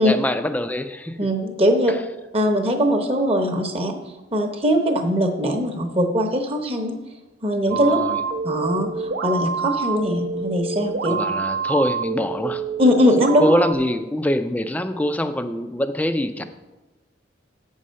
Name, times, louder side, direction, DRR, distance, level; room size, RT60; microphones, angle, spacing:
voice 1, 0.0-1.2 1.9-2.0 7.7-8.2 11.1-12.6 13.4-16.4, left 1 dB, 10° left, 9 dB, 0.4 m, -24 dB
voice 2, 1.2-1.9 2.3-4.0 4.3-7.0 7.4-8.0 8.4-11.1 12.8-13.5, equal, 30° right, 4 dB, 0.8 m, -20 dB
sound 1, 7.7-13.7, right 5 dB, 60° right, 0.7 m, -27 dB
8.4 x 5.5 x 6.3 m, 1.1 s
head